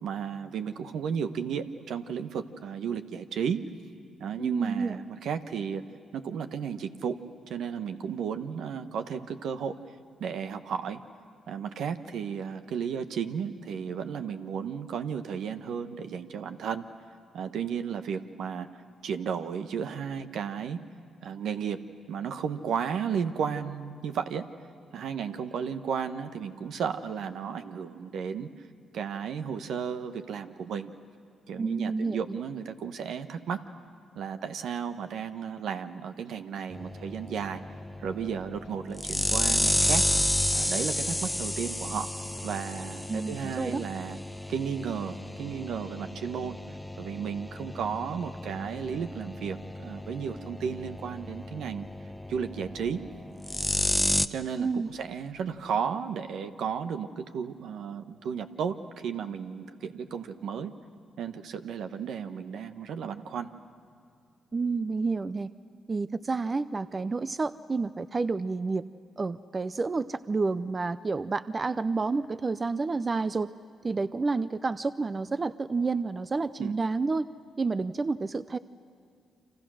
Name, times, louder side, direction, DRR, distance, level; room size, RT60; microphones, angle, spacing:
voice 1, 0.0-3.6 4.2-5.8 6.1-7.2 7.5-9.7 10.2-11.0 11.5-16.8 17.3-18.7 19.0-20.8 21.2-24.5 24.9-28.5 28.9-30.9 31.5-33.6 34.2-37.6 38.0-40.0 40.5-42.1 42.4-44.2 44.5-46.6 47.0-51.9 52.3-53.0 54.3-60.7 61.2-63.5 76.6-76.7, right 7 dB, 75° right, 9 dB, 1.1 m, -34 dB
voice 2, 4.4-4.9 31.6-32.2 43.1-43.8 54.6-54.9 64.5-65.5 65.9-68.8 69.2-73.5 73.8-77.3 77.6-78.6, right 4 dB, 35° right, 14 dB, 0.6 m, -29 dB
sound 1, 36.7-54.3, left 1 dB, 10° left, 0.8 m, -32 dB
30.0 x 26.0 x 6.4 m, 2.4 s
supercardioid pair, 60°, 0 cm